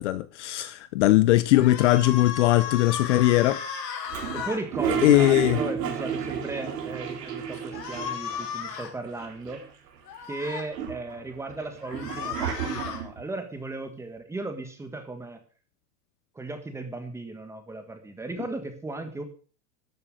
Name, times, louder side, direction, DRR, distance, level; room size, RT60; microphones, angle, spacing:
voice 1, 0.0-3.6 5.0-5.6, left 16 dB, 50° left, 0.6 m, -20 dB
sound 1, 1.5-4.6 7.7-8.9 10.1-10.6 11.8-13.0, left 7 dB, 85° left, 3.8 m, -35 dB
Toilet flush, 4.1-8.5 8.7-8.8 9.0-9.9 10.4-13.2, right 7 dB, 80° right, 3.6 m, -32 dB
voice 2, 4.3-9.6 10.3-15.4 16.3-19.2, right 2 dB, 5° right, 1.5 m, -36 dB
sound 2, 5.1-8.8, right 8 dB, 25° right, 1.2 m, -44 dB
12.5 x 7.6 x 6.4 m
supercardioid pair, 160°, 48 cm